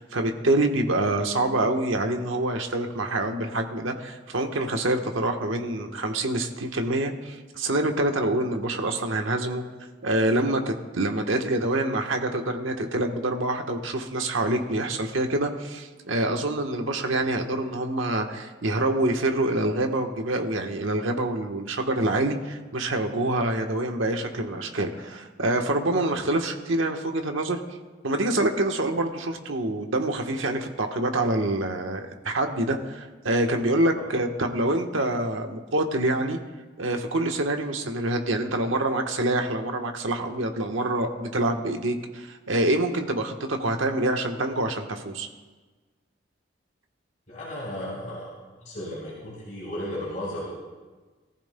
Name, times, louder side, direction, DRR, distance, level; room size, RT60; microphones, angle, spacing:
voice 1, 0.0-9.6 10.0-27.6 28.0-36.4 36.8-45.3, right 1 dB, 85° right, 4 dB, 1.2 m, -26 dB
voice 2, 47.3-48.3 48.6-50.5, left 1 dB, 40° left, -6 dB, 4.2 m, -34 dB
21.5 x 14.5 x 2.2 m, 1.3 s
head